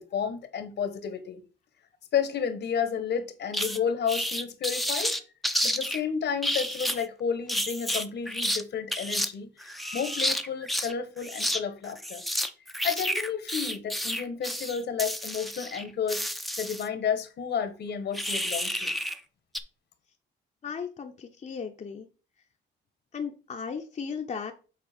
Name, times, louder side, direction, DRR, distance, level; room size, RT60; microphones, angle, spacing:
voice 1, 0.0-1.4 2.1-5.1 5.6-12.2 12.8-16.3 16.6-18.9, left 7 dB, 60° left, 1.3 m, -31 dB
sound 1, 3.5-3.8 4.1-6.0 6.4-7.0 7.5-8.6 8.9-9.3 9.6-10.9 11.2-11.6 11.9-16.9 18.1-19.2 19.5-19.6, equal, ahead, 0.7 m, -30 dB
voice 2, 20.6-22.1 23.1-24.5, left 6 dB, 35° left, 0.9 m, -36 dB
7.5 x 4.1 x 4.4 m
cardioid pair, 90°, 20 cm